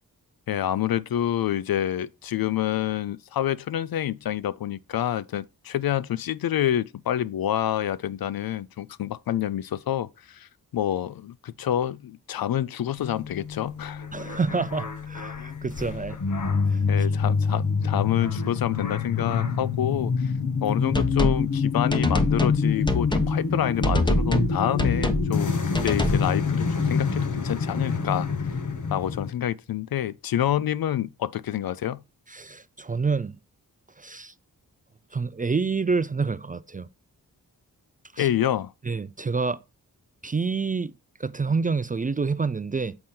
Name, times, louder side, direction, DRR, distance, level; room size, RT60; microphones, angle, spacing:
voice 1, 0.5-10.5 10.7-14.0 16.9-20.3 20.6-28.3 28.9-32.0 38.2-38.7, left 11 dB, 65° left, 0.5 m, -27 dB
sound 1, 13.0-29.3, left 5 dB, 50° left, 1.0 m, -26 dB
voice 2, 14.1-16.2 16.7-16.8 32.3-33.4 34.0-34.3 35.1-36.9 38.1-38.3 38.8-39.6 40.2-40.9 41.2-43.0, right 4 dB, 25° right, 0.3 m, -28 dB
sound 2, 20.9-21.4 21.9-22.6 22.9-23.3 23.8-24.5 24.8-25.3 25.7-26.2, left 1 dB, 10° left, 1.1 m, -24 dB
7.7 x 3.7 x 4.3 m
cardioid pair, 50°, 38 cm